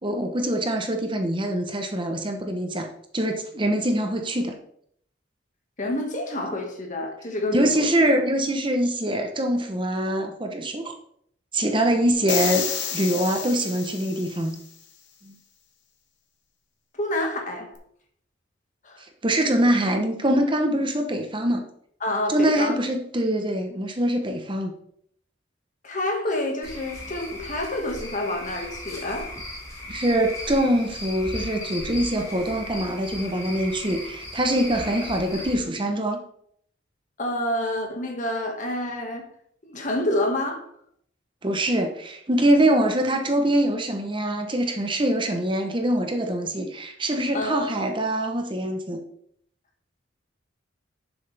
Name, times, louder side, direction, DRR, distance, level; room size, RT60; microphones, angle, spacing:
voice 1, 0.0-2.9 3.1-4.6 7.5-10.9 11.5-12.7 12.9-14.6 15.2-15.3 19.2-21.6 22.3-24.7 29.9-36.2 41.4-49.0, right 1 dB, 25° right, 0.9 m, -24 dB
voice 2, 5.8-7.9 16.9-17.7 18.8-19.0 22.0-22.8 25.8-29.3 37.2-39.3 39.6-40.7 47.3-47.8, left 1 dB, 40° left, 1.9 m, -28 dB
sound 1, 12.3-14.6, left 7 dB, 70° left, 1.6 m, -30 dB
Cricket / Frog, 26.6-35.5, left 1 dB, 20° left, 2.5 m, -37 dB
11.0 x 7.1 x 3.4 m
head